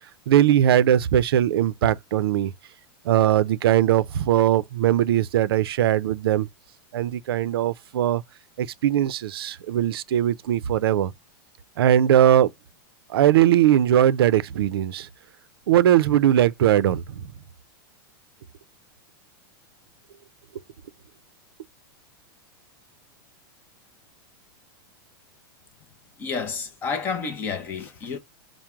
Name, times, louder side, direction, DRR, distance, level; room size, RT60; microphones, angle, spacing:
voice 1, 0.3-2.5 3.0-6.5 6.9-8.2 8.6-11.1 11.8-12.5 13.1-15.1 15.7-17.2, right 11 dB, 85° right, 0.5 m, -20 dB
voice 2, 26.2-28.2, left 5 dB, 15° left, 0.5 m, -30 dB
4.5 x 2.0 x 3.5 m
supercardioid pair, 175°, 12 cm